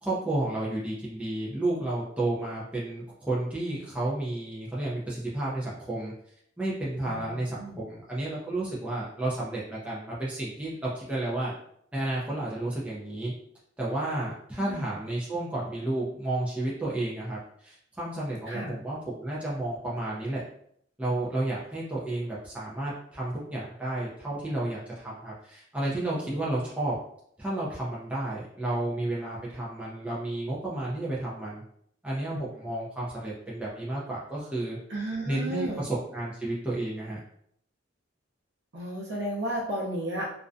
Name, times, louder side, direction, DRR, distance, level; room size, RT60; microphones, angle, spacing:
voice 1, 0.0-6.1 6.6-11.5 11.9-13.3 13.8-20.4 21.0-26.9 27.4-31.6 32.0-34.8 35.3-37.2, right 1 dB, 5° right, -7 dB, 0.4 m, -31 dB
voice 2, 7.0-7.8 14.6-14.8 18.5-18.8 34.9-35.8 38.7-40.3, right 1 dB, 65° right, -4 dB, 0.6 m, -33 dB
2.4 x 2.1 x 2.5 m, 0.68 s
head